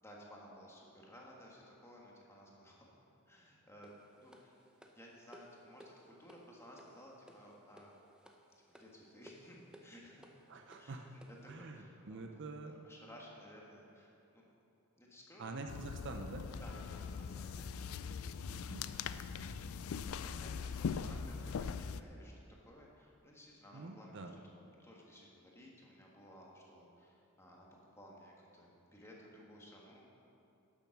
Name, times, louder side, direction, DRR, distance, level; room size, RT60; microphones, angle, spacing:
voice 1, 0.0-3.0 3.3-4.6 4.9-8.0 8.7-10.3 10.8-14.4 15.0-15.5 16.6-18.0 20.0-22.3 22.6-24.5 24.8-27.7 28.0-30.0, equal, 10° left, -3 dB, 1.6 m, -57 dB
sound 1, 3.8-11.5, equal, 5° right, 0.6 m, -61 dB
voice 2, 10.5-11.1 11.5-12.9 15.4-16.4 18.5-18.9 23.7-24.3, right 3 dB, 55° right, 5 dB, 0.6 m, -46 dB
sound 2, 15.7-22.0, left 6 dB, 65° left, 0.4 m, -41 dB
11.5 x 7.1 x 6.0 m, 2.7 s
head